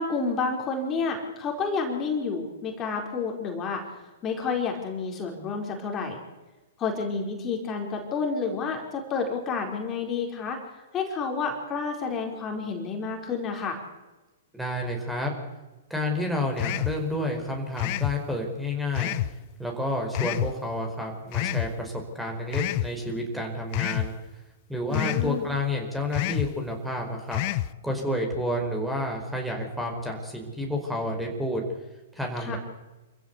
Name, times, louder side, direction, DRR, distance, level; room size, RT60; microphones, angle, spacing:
voice 1, 0.0-3.8 4.2-6.2 6.8-10.6 10.9-13.8 24.9-25.4 32.4-32.6, left 4 dB, 25° left, 2 dB, 4.5 m, -30 dB
voice 2, 14.5-15.3 15.9-19.2 19.6-24.1 24.7-27.4 27.8-31.6 32.1-32.6, left 1 dB, 5° right, 2 dB, 4.8 m, -30 dB
sound 1, 16.6-17.0 17.8-18.2 19.0-19.3 20.2-20.5 21.3-21.7 22.5-22.9 23.7-24.1 24.9-25.3 26.1-26.5 27.3-27.7, left 16 dB, 40° left, 0.8 m, -27 dB
27.0 x 15.5 x 8.3 m, 1.1 s
figure-of-eight pair, 110°, 0 cm